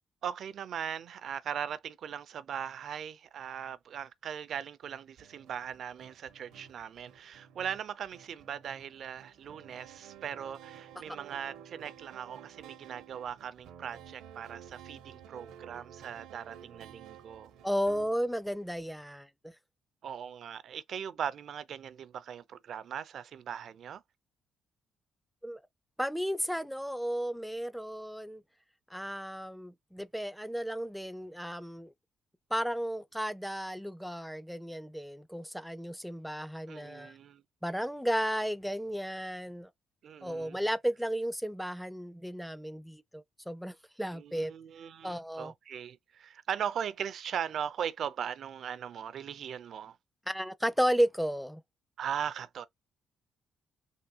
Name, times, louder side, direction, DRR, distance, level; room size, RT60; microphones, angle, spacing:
voice 1, 0.2-17.5 20.0-24.0 36.7-37.4 40.0-40.6 44.1-50.0 52.0-52.6, right 8 dB, 65° right, 0.4 m, -39 dB
sound 1, 5.2-18.1, right 9 dB, 85° right, 0.8 m, -52 dB
voice 2, 17.6-19.5 25.4-25.6 26.0-28.4 28.9-31.9 32.5-37.1 37.6-39.7 40.2-44.5 45.0-45.5 50.3-51.6, equal, ahead, 0.4 m, -33 dB
3.5 x 2.7 x 2.7 m
cardioid pair, 90°, 0 cm